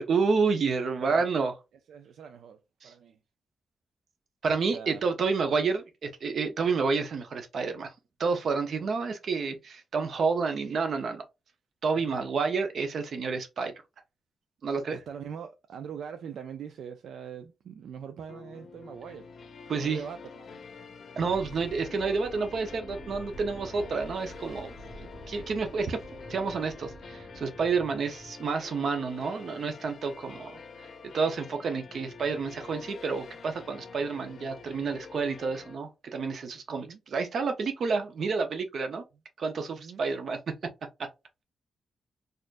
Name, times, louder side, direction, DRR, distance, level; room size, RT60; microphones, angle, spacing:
voice 1, 0.0-1.5 2.8-2.9 4.4-7.9 8.2-11.2 11.8-13.7 14.6-15.0 19.7-20.0 21.2-24.7 25.0-26.0 26.3-30.6 31.0-39.0 39.4-40.5 41.0-41.1, right 4 dB, 60° right, 0.7 m, -29 dB
voice 2, 1.9-3.2 4.7-5.1 14.9-19.3 19.8-20.5 36.7-37.0 39.8-40.0, right 7 dB, 80° right, 0.4 m, -42 dB
sound 1, 18.3-35.8, left 5 dB, 55° left, 0.6 m, -47 dB
sound 2, 21.2-28.3, right 1 dB, 5° left, 0.9 m, -47 dB
4.2 x 2.5 x 2.4 m
wide cardioid pair, 125°, 0 cm